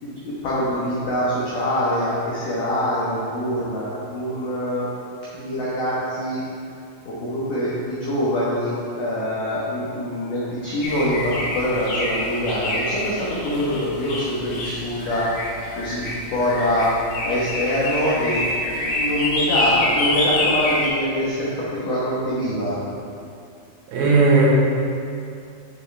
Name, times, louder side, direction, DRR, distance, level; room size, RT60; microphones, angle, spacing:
voice 1, 0.0-4.9 5.3-6.4 7.1-15.3 15.8-16.9 17.2-23.0, equal, 80° left, -8 dB, 1.8 m, -24 dB
sound 1, 10.8-20.9, left 2 dB, 65° left, 3.6 m, -26 dB
voice 2, 23.9-24.5, right 3 dB, 90° right, -6 dB, 4.3 m, -16 dB
9.2 x 7.2 x 3.3 m, 2.5 s
omnidirectional pair, 5.7 m